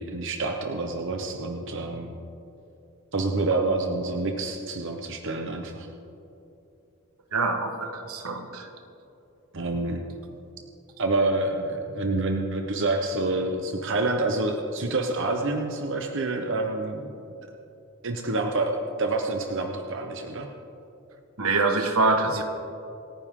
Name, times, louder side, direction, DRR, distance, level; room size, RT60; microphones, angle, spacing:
voice 1, 0.0-2.1 3.1-5.9 9.5-10.0 11.0-17.1 18.0-20.5 22.3-22.4, right 2 dB, 60° right, 3 dB, 1.0 m, -27 dB
voice 2, 7.3-8.7 21.4-22.4, right 3 dB, 85° right, 5 dB, 1.4 m, -25 dB
27.5 x 9.8 x 3.8 m, 2.7 s
head